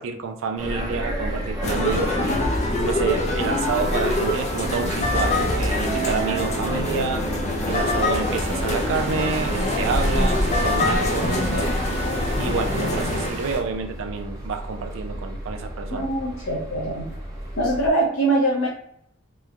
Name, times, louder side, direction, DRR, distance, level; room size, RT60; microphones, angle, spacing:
voice 1, 0.0-2.2 2.8-7.3 7.7-11.7 12.4-16.1, right 4 dB, 80° right, 5 dB, 0.4 m, -29 dB
sound 1, 0.6-17.9, right 1 dB, 15° right, 0.7 m, -32 dB
sound 2, 1.6-13.3, left 1 dB, 35° left, 0.3 m, -25 dB
voice 2, 6.8-7.2 15.9-17.0 17.6-18.7, right 1 dB, 70° left, -7 dB, 0.7 m, -23 dB
sound 3, 7.7-13.6, equal, 35° right, 1.3 m, -29 dB
3.0 x 2.1 x 2.4 m, 0.70 s
head